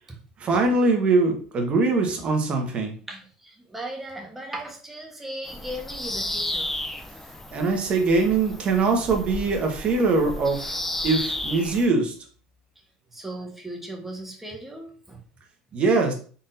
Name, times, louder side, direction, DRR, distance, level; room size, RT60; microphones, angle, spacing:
voice 1, 0.4-2.9 7.5-10.8 11.0-12.1 15.7-16.1, right 3 dB, 40° right, 2 dB, 1.2 m, -22 dB
voice 2, 3.1-6.7 13.1-15.2, right 1 dB, 10° right, 1 dB, 1.2 m, -37 dB
Bird vocalization bird call bird song, 5.5-11.9, left 1 dB, 10° left, 0.5 m, -33 dB
4.0 x 3.6 x 2.6 m, 0.41 s
supercardioid pair, 100°, 3 cm